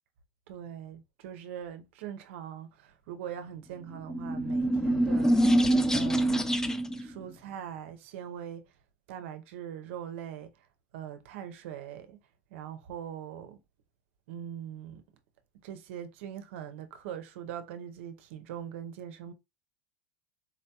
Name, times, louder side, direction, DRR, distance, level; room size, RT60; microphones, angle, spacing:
voice 1, 0.5-5.4 5.9-6.6 7.0-8.7 9.1-10.5 10.9-12.2 12.5-13.6 14.3-15.0 15.6-19.3, right 9 dB, 75° right, 0.6 m, -41 dB
sound 1, 4.0-7.1, right 1 dB, 10° left, 0.4 m, -25 dB
4.0 x 2.7 x 2.2 m
hypercardioid pair, 100°, 7 cm